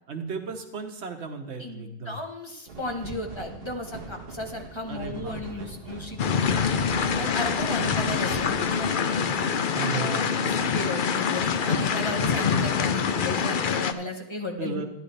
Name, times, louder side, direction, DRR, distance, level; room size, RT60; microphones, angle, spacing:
voice 1, 0.1-2.2 4.9-5.8 7.8-8.0 9.7-10.6 14.6-14.9, right 4 dB, 90° right, 6 dB, 1.4 m, -35 dB
voice 2, 1.6-6.5 7.2-9.4 9.9-14.9, left 2 dB, 25° left, 3 dB, 1.2 m, -35 dB
sound 1, 2.7-8.9, right 4 dB, 65° right, 1.4 m, -40 dB
sound 2, 6.2-13.9, left 6 dB, 55° left, 0.8 m, -25 dB
12.5 x 11.0 x 3.4 m, 0.93 s
omnidirectional pair, 1.1 m